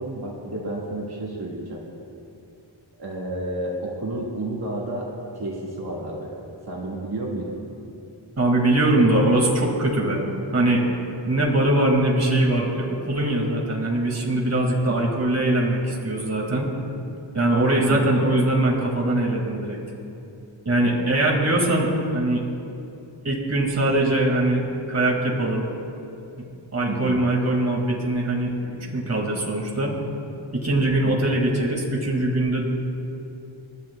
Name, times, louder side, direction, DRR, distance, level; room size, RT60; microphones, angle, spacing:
voice 1, 0.0-1.8 3.0-6.3 6.6-7.6 14.9-15.1 17.7-18.0 26.9-27.2 31.0-31.3, right 2 dB, 50° right, -5 dB, 2.0 m, -31 dB
voice 2, 8.4-10.8 11.3-16.7 17.3-19.8 20.7-22.4 23.2-24.6 24.9-25.7 26.4-26.5 26.7-29.9 30.5-32.7, right 1 dB, 35° right, -2 dB, 2.3 m, -22 dB
29.0 x 12.0 x 2.4 m, 2.7 s
wide cardioid pair, 135°, 48 cm